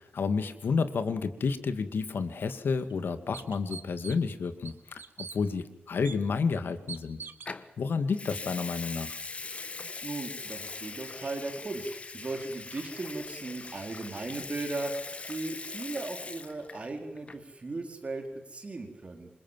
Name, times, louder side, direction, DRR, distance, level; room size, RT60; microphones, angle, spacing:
voice 1, 0.0-7.2 7.8-9.2, left 5 dB, 75° left, 10 dB, 2.3 m, -30 dB
sound 1, 2.3-2.4 2.9-3.0 3.3-4.3 4.6-5.4 6.0-6.2 6.9-7.5, right 6 dB, 80° right, 1.9 m, -43 dB
Water tap faucet / Sink (filling or washing) / Liquid, 7.5-7.7 8.1-16.9 17.2-17.5, left 3 dB, 35° left, 1.4 m, -41 dB
voice 2, 10.0-19.3, right 2 dB, 35° right, 4 dB, 4.3 m, -37 dB
28.0 x 26.5 x 7.6 m, 0.83 s
wide cardioid pair, 170°, 4 cm